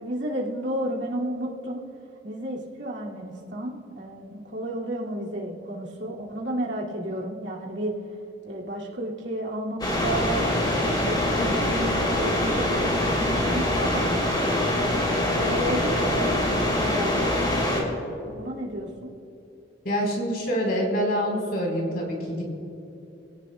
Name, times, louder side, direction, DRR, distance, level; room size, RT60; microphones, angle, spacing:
voice 1, 0.0-1.8 2.2-7.9 8.4-10.5 11.0-14.1 14.7-17.3 17.7-19.1, right 1 dB, 70° right, -3 dB, 2.3 m, -32 dB
sound 1, 9.8-17.8, left 1 dB, 25° left, 2.9 m, -24 dB
voice 2, 19.8-22.4, equal, 55° left, -1 dB, 3.9 m, -26 dB
26.5 x 17.0 x 2.2 m, 2.7 s
head